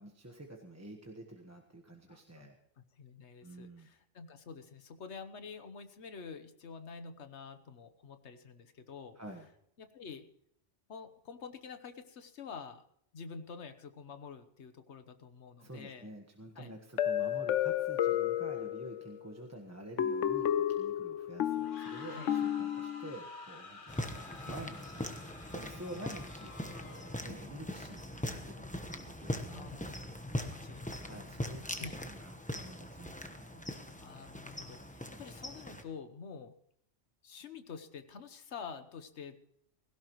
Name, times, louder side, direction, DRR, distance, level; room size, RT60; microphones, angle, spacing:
voice 1, 0.0-2.6 3.4-3.9 9.1-9.5 15.6-25.2 25.5-29.9 31.0-33.7, right 1 dB, 15° right, 1 dB, 1.3 m, -49 dB
voice 2, 2.1-2.5 3.0-9.2 9.8-10.2 10.9-12.8 13.1-16.1 16.6-16.7 22.0-22.3 29.5-29.9 30.3-31.1 31.8-32.0 34.0-36.5 37.2-39.4, left 5 dB, 70° left, 10 dB, 1.4 m, -48 dB
sound 1, 17.0-19.2 20.0-23.1, left 10 dB, 85° left, 1.1 m, -32 dB
sound 2, 21.5-27.3, left 3 dB, 45° left, 1.5 m, -50 dB
sound 3, 23.9-35.8, left 1 dB, 5° left, 1.0 m, -41 dB
17.5 x 16.0 x 3.1 m, 0.70 s
omnidirectional pair, 1.2 m